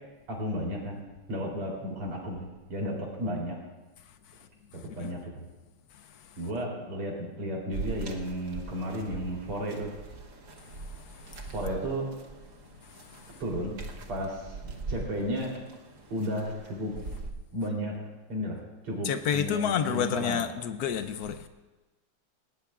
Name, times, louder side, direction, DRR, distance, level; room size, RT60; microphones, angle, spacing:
voice 1, 0.3-3.6 5.0-5.4 6.4-9.9 11.5-12.1 13.4-13.8 14.1-15.5 16.1-17.0 17.5-17.9 18.3-18.6 18.8-20.4, equal, 85° right, -3 dB, 4.4 m, -33 dB
sound 1, 7.7-17.3, right 4 dB, 45° right, 1.2 m, -41 dB
voice 2, 19.0-21.5, left 8 dB, 80° left, 9 dB, 0.8 m, -29 dB
20.5 x 17.5 x 2.4 m, 1.2 s
omnidirectional pair, 2.4 m